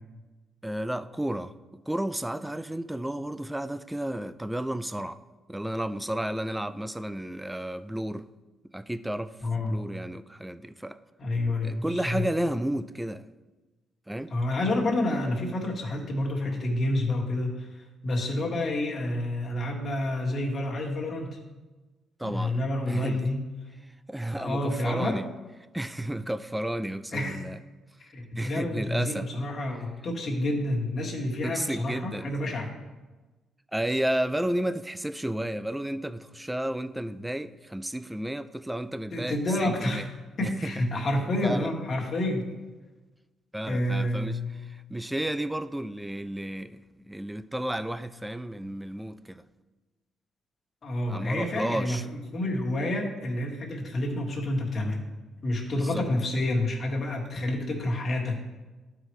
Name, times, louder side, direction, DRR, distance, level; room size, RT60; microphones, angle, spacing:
voice 1, 0.6-1.5 1.9-5.2 5.5-8.3 8.7-9.3 9.7-11.0 11.6-13.3 14.1-14.3 22.2-23.3 24.1-25.2 25.7-27.6 28.4-29.3 31.4-32.3 33.7-40.1 40.4-40.7 41.4-41.7 43.5-46.8 47.1-49.4 51.1-52.0 55.8-56.0, right 1 dB, 5° right, 0.3 m, -32 dB
voice 2, 9.4-9.8 11.2-12.2 14.3-21.4 22.2-23.5 24.4-25.2 27.1-27.4 28.1-32.7 39.1-40.0 40.4-42.5 43.7-44.5 50.8-55.0 55.4-58.4, left 1 dB, 45° left, 1.6 m, -29 dB
12.0 x 4.8 x 3.2 m
cardioid pair, 90°, 0 cm